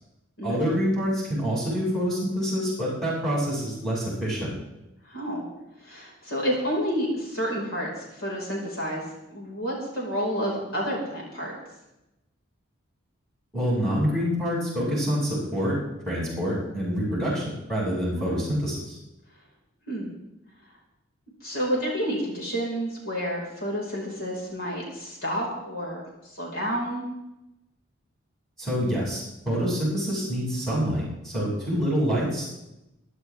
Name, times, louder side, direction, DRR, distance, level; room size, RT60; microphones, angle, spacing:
voice 1, 0.4-4.5 13.5-15.8 16.1-19.0 28.6-32.5, equal, ahead, -6 dB, 7.6 m, -26 dB
voice 2, 5.0-5.4 5.8-9.0 9.3-11.5 18.2-18.4 19.9-20.1 21.4-27.0, equal, 85° left, -3 dB, 5.8 m, -30 dB
26.0 x 12.5 x 3.7 m, 0.92 s
head